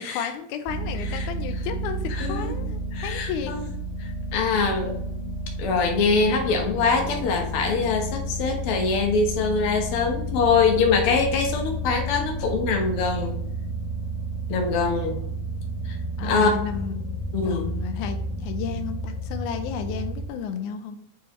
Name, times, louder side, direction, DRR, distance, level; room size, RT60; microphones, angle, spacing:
voice 1, 0.0-3.5 16.2-21.0, left 7 dB, 90° left, 7 dB, 2.1 m, -33 dB
sound 1, 0.7-20.3, equal, 15° right, 1.9 m, -31 dB
voice 2, 2.2-2.5 2.9-3.6 4.0-5.0 5.6-13.4 14.5-15.3 15.9-16.0 16.2-16.5 17.3-17.7, left 4 dB, 55° left, 2 dB, 1.8 m, -23 dB
8.2 x 4.6 x 3.1 m, 0.75 s
omnidirectional pair, 3.5 m